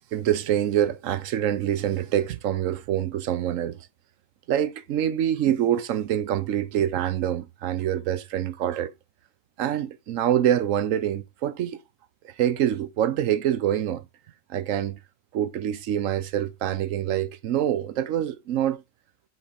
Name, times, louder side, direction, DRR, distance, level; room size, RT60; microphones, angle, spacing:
voice 1, 0.1-3.8 4.5-8.9 9.6-11.8 12.2-14.0 14.5-15.0 15.3-18.8, right 11 dB, 80° right, 1.1 m, -25 dB
7.8 x 4.4 x 5.0 m
omnidirectional pair, 1.3 m